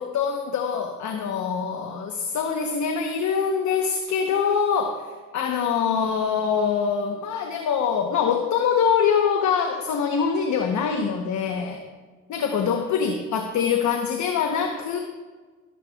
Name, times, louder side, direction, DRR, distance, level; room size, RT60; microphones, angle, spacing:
voice 1, 0.0-11.8 12.3-15.0, left 6 dB, 70° left, 4 dB, 1.0 m, -24 dB
13.0 x 12.5 x 2.4 m, 1.4 s
cardioid pair, 90°, 30 cm